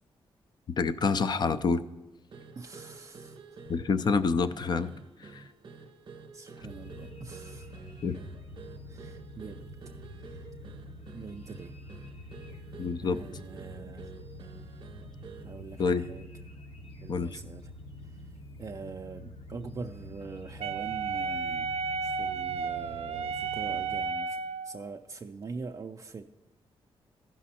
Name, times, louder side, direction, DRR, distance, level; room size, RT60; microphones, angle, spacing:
voice 1, 0.8-1.8 3.7-4.9 5.2-5.4 8.0-8.2 12.8-13.2 15.8-16.0 17.1-17.4, left 5 dB, 45° left, 12 dB, 0.5 m, -27 dB
sound 1, 2.3-15.6, right 4 dB, 55° right, 0.8 m, -50 dB
voice 2, 2.5-3.6 6.3-7.8 8.9-9.7 9.9-10.5 11.1-11.7 13.0-14.1 15.4-16.3 17.0-17.7 18.0-21.7 22.0-26.2, right 4 dB, 35° right, 3 dB, 0.4 m, -44 dB
sound 2, 6.6-24.0, left 1 dB, 65° left, 1.4 m, -46 dB
Wind instrument woodwind instrument, 20.6-24.8, right 5 dB, 90° right, 0.5 m, -33 dB
15.0 x 6.0 x 4.2 m, 1.1 s
wide cardioid pair, 140°, 10 cm